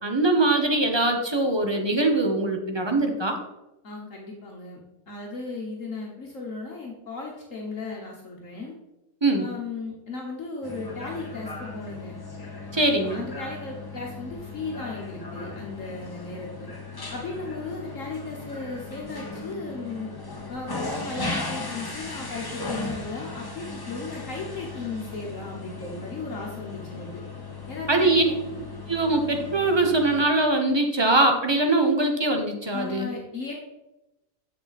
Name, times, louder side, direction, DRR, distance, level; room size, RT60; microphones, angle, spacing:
voice 1, 0.0-3.4 9.2-9.5 12.7-13.2 27.9-28.2 28.9-33.1, right 2 dB, 25° right, 4 dB, 0.7 m, -22 dB
voice 2, 3.8-4.8 5.1-8.7 9.4-12.2 12.7-16.7 17.1-20.1 20.5-27.2 27.7-28.3 32.7-33.5, left 3 dB, 55° left, -1 dB, 1.4 m, -36 dB
sound 1, 10.6-30.3, left 3 dB, 20° left, 0.8 m, -37 dB
7.7 x 6.6 x 4.1 m, 0.93 s
omnidirectional pair, 1.7 m